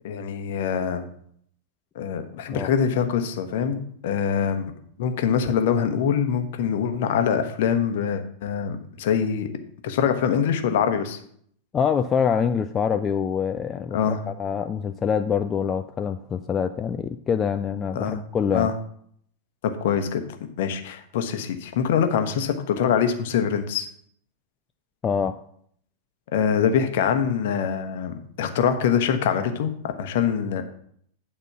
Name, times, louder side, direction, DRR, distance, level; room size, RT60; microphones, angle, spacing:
voice 1, 0.0-1.1 1.9-4.7 5.0-9.5 9.8-11.2 13.9-14.2 17.9-18.2 18.5-18.7 19.6-20.2 20.6-23.9 26.3-29.7 30.0-30.6, left 7 dB, 55° left, 8 dB, 0.9 m, -24 dB
voice 2, 11.7-18.7 25.0-25.4, left 7 dB, 25° left, 7 dB, 0.4 m, -25 dB
9.2 x 4.4 x 5.7 m, 0.65 s
figure-of-eight pair, 90°, 0 cm